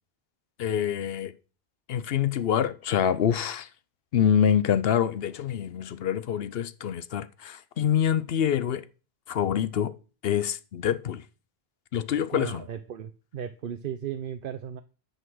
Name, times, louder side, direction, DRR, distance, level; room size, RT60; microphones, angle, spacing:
voice 1, 0.6-1.3 1.9-3.7 4.1-8.8 9.3-9.9 10.2-11.2 11.9-12.6, left 9 dB, 70° left, 0.9 m, -26 dB
voice 2, 12.3-14.8, right 9 dB, 60° right, 0.8 m, -36 dB
9.7 x 5.4 x 6.2 m
omnidirectional pair, 1.1 m